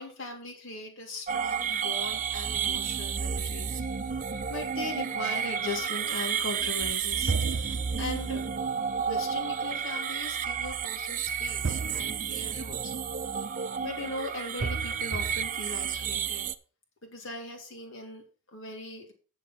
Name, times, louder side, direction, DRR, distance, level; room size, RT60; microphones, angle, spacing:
voice 1, 0.0-3.8 4.5-8.4 9.1-12.9 13.8-16.5 17.0-19.1, left 2 dB, 70° left, 2.8 m, -39 dB
sound 1, 1.3-16.5, right 7 dB, 40° right, 0.5 m, -31 dB
sound 2, 3.6-5.7 7.3-9.8 11.6-13.9 14.6-15.5, right 4 dB, 65° right, 0.8 m, -37 dB
7.6 x 7.1 x 6.0 m
head